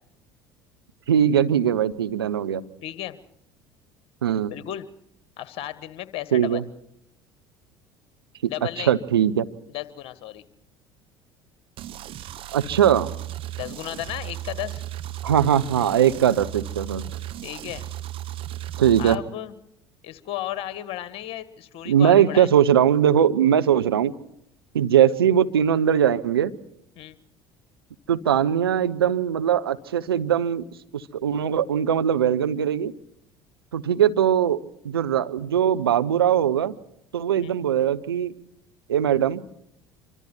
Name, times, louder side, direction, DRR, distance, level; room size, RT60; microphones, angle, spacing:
voice 1, 1.1-2.6 4.2-4.5 6.3-6.6 8.4-8.5 8.8-9.5 12.5-13.1 15.2-17.0 18.8-19.2 21.9-24.1 24.7-26.5 28.1-30.6 30.9-32.9 33.7-34.6 34.8-36.7 37.1-38.3 38.9-39.4, right 9 dB, 80° right, 10 dB, 0.9 m, -20 dB
voice 2, 2.8-3.2 4.5-4.8 5.4-6.6 8.5-8.9 9.7-10.5 13.5-14.8 17.4-17.9 19.0-19.5 20.0-22.5 27.0-27.2 37.4-37.5, left 13 dB, 50° left, 13 dB, 1.6 m, -34 dB
sound 1, 11.8-19.2, right 13 dB, 45° right, 1.2 m, -35 dB
26.0 x 24.5 x 4.5 m, 0.74 s
figure-of-eight pair, 65°, 12 cm